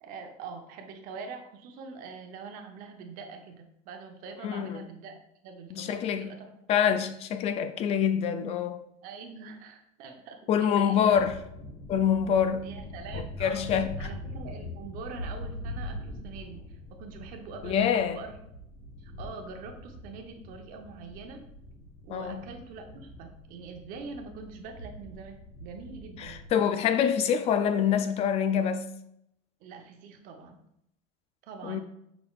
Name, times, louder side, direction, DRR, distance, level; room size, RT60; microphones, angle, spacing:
voice 1, 0.0-5.1 5.4-6.5 9.0-11.2 12.6-13.7 14.0-18.3 19.0-21.4 22.0-26.4 29.6-30.6 31.4-31.8, right 4 dB, 55° right, 0.8 m, -44 dB
voice 2, 4.4-4.9 5.7-6.3 6.7-8.8 10.5-11.4 11.9-12.7 13.1-14.1 17.6-18.2 22.1-22.4 26.2-28.9 31.6-31.8, left 8 dB, 40° left, 0.4 m, -26 dB
sound 1, 11.1-26.5, left 1 dB, 70° left, 1.3 m, -43 dB
5.8 x 3.8 x 2.3 m
cardioid pair, 150°, 17 cm